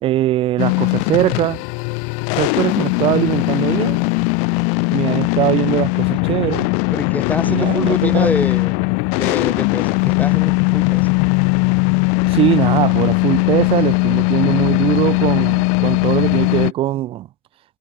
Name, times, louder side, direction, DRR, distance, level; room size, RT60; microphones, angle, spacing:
voice 1, 0.0-1.6 2.4-4.0 4.9-6.7 7.4-8.3 12.2-17.3, right 14 dB, 50° right, 1.4 m, -20 dB
sound 1, 0.6-16.7, left 39 dB, 75° left, 1.6 m, -18 dB
voice 2, 6.9-8.8 9.1-11.1, left 3 dB, 15° left, 2.2 m, -25 dB
supercardioid pair, 120°, 12 cm